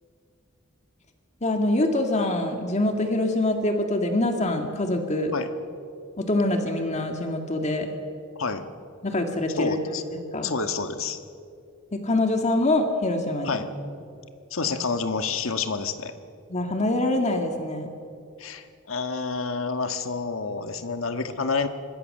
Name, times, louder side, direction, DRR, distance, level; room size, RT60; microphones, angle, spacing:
voice 1, 1.4-5.3 6.2-7.9 9.0-9.8 10.1-10.5 11.9-13.6 16.5-17.9, left 1 dB, 35° left, 4 dB, 2.0 m, -25 dB
voice 2, 9.5-10.0 10.4-11.2 13.4-13.7 14.5-16.1 18.4-21.7, left 4 dB, 80° left, 8 dB, 1.5 m, -28 dB
26.0 x 21.0 x 6.6 m, 2.4 s
head